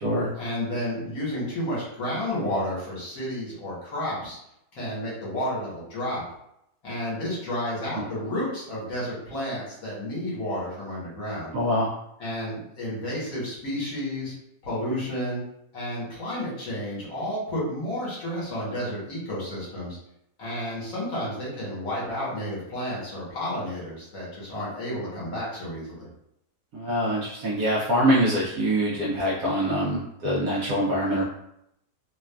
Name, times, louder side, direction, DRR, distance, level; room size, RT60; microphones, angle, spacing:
voice 1, 0.3-4.4 4.7-6.2 6.8-11.5 12.2-14.3 14.6-15.4 15.7-20.0 20.4-26.1, left 1 dB, 60° left, -6 dB, 1.5 m, -31 dB
voice 2, 11.5-11.9 26.7-31.2, equal, 70° right, -6 dB, 0.9 m, -24 dB
3.0 x 2.3 x 2.2 m, 0.77 s
omnidirectional pair, 1.7 m